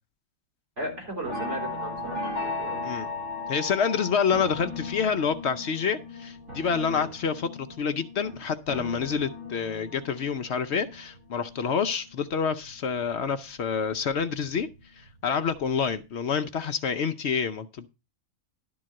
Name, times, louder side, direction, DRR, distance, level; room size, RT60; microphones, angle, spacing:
voice 1, 0.8-2.8 6.9-7.1, right 2 dB, 55° right, -1 dB, 4.3 m, -36 dB
sound 1, 0.8-12.9 13.3-14.9 15.3-15.6 15.9-16.0, left 3 dB, 70° right, 5.2 m, -37 dB
voice 2, 3.5-14.7 15.0-17.9, left 6 dB, 60° left, 9 dB, 0.8 m, -28 dB
12.0 x 3.9 x 7.5 m, 0.29 s
omnidirectional pair, 1.5 m